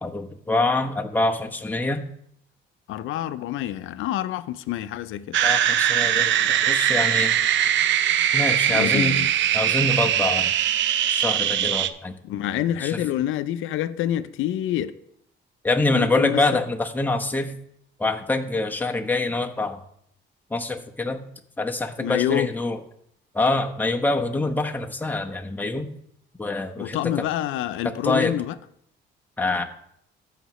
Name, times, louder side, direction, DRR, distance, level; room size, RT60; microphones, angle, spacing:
voice 1, 0.0-2.0 5.4-7.3 8.3-9.2 9.5-10.5 11.1-12.1 12.8-13.0 15.6-17.5 18.0-19.8 20.5-21.2 21.6-22.8 23.3-25.9 26.4-27.0 27.8-28.3 29.4-29.6, left 2 dB, 10° left, 1.0 m, -25 dB
voice 2, 2.9-5.4 8.7-9.3 12.2-14.9 15.9-16.4 22.0-22.5 26.8-28.6, left 12 dB, 85° left, 0.5 m, -27 dB
sound 1, 5.3-11.9, right 10 dB, 70° right, 0.5 m, -21 dB
14.5 x 5.8 x 3.1 m
cardioid pair, 90°, 20 cm